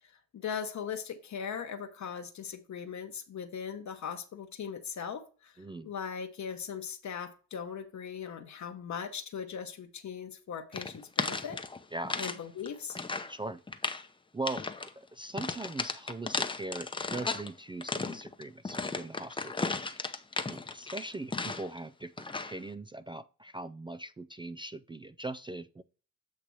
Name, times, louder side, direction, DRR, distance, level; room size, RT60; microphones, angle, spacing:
voice 1, 0.3-5.5 5.8-11.6 12.2-13.0, left 7 dB, 50° left, 0.9 m, -39 dB
voice 2, 5.6-5.9 11.9-12.2 13.3-13.6 14.3-14.7 15.0-20.2 20.5-25.8, right 2 dB, 15° right, 0.3 m, -40 dB
sound 1, 10.7-12.4 12.7-13.3 13.7-14.1 14.4-14.9 15.4-17.5 17.8-21.8 22.2-22.6, left 3 dB, 15° left, 0.7 m, -35 dB
8.3 x 2.9 x 6.1 m
cardioid pair, 95°, 36 cm